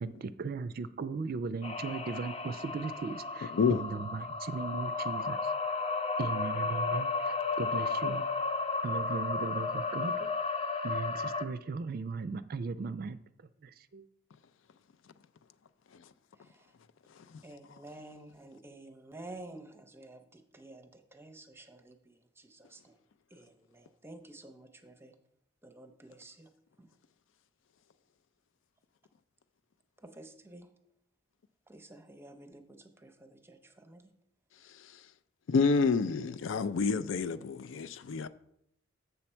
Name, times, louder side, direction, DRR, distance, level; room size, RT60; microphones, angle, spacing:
voice 1, 0.0-5.4 6.2-8.3 8.8-10.3 10.8-13.2 13.6-14.0, right 4 dB, 50° right, 0.4 m, -37 dB
sound 1, 1.6-11.4, left 4 dB, 30° left, 0.6 m, -33 dB
voice 2, 17.4-23.0 23.3-25.2 25.6-26.5 26.8-26.9 30.0-30.7 31.7-34.1 36.4-36.6, right 2 dB, 10° right, 0.6 m, -51 dB
voice 3, 35.5-38.3, left 5 dB, 75° left, 0.4 m, -28 dB
7.1 x 6.8 x 4.4 m
head